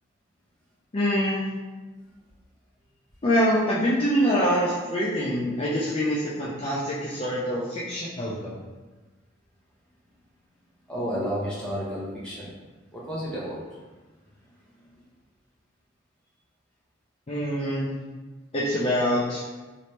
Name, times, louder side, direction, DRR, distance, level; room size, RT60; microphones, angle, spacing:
voice 1, 0.9-1.4 3.2-8.6 17.3-17.9 18.5-19.4, equal, 30° left, -8 dB, 0.4 m, -25 dB
voice 2, 10.9-12.5 12.9-13.7, equal, 5° left, -7 dB, 0.8 m, -31 dB
3.1 x 3.1 x 2.8 m, 1.2 s
head